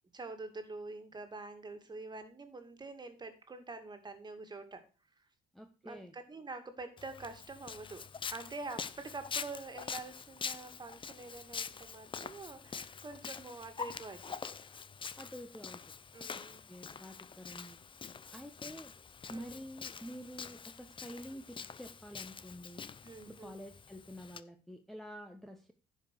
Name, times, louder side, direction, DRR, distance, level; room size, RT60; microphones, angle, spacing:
voice 1, 0.1-4.8 5.2-5.3 5.8-8.0 8.3-14.4 16.1-16.6 19.3-19.6 23.0-23.6, right 3 dB, 25° right, 7 dB, 2.2 m, -46 dB
voice 2, 5.5-6.1 15.2-15.8 16.3-16.4 16.7-17.8 18.3-18.9 19.3-22.8 23.3-25.7, equal, ahead, 3 dB, 1.0 m, -48 dB
Walk footsteps, 7.0-24.4, left 6 dB, 30° left, 0.7 m, -45 dB
10.5 x 5.4 x 6.6 m, 0.35 s
cardioid pair, 105°, 18 cm